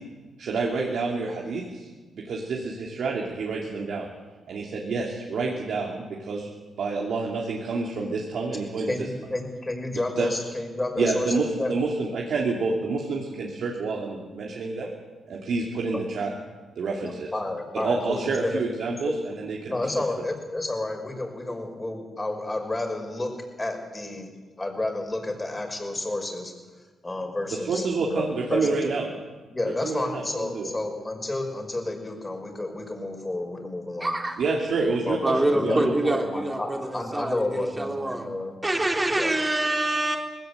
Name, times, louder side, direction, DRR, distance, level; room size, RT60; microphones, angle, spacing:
voice 1, 0.4-1.9 2.2-4.1 4.5-6.5 6.8-8.9 10.2-10.3 11.0-14.9 15.3-16.3 16.8-17.3 17.7-19.9 27.5-29.1 29.8-30.7 34.4-36.2, right 3 dB, 70° right, -1 dB, 3.0 m, -28 dB
voice 2, 8.9-11.7 17.0-18.6 18.9-19.1 19.7-23.3 23.6-24.3 24.6-26.5 27.0-28.9 29.5-34.1 35.0-35.2 35.5-35.8 36.3-38.5 39.2-39.3, left 2 dB, 20° left, 3 dB, 5.3 m, -31 dB
voice 3, 34.0-34.4 35.2-38.3 38.6-40.2, right 1 dB, 15° right, 2 dB, 3.4 m, -26 dB
20.0 x 17.0 x 8.2 m, 1.3 s
cardioid pair, 90°, 0 cm